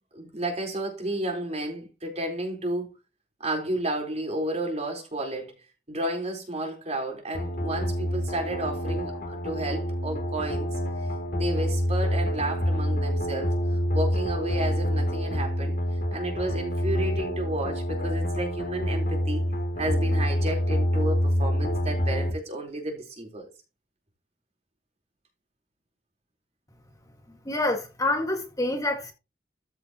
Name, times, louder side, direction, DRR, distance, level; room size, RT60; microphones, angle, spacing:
voice 1, 0.1-2.9 3.4-5.5 5.9-10.7 11.3-13.5 13.9-15.8 16.1-19.4 19.8-23.5, right 1 dB, 40° right, 4.1 m, -32 dB
sound 1, 7.3-22.3, equal, 55° left, 3.0 m, -27 dB
voice 2, 27.5-29.1, left 2 dB, 20° left, 1.9 m, -27 dB
14.0 x 6.9 x 3.0 m
head